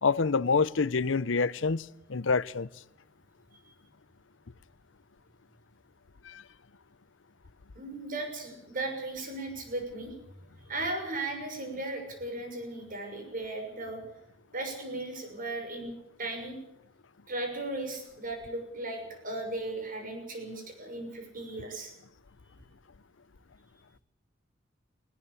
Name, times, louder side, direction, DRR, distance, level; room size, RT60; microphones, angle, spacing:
voice 1, 0.0-2.7 6.2-6.4, left 4 dB, 70° left, 0.7 m, -27 dB
voice 2, 7.7-10.1 10.7-14.0 14.5-16.6 17.3-21.9, right 2 dB, 45° right, 6.3 m, -36 dB
19.5 x 18.0 x 8.4 m
head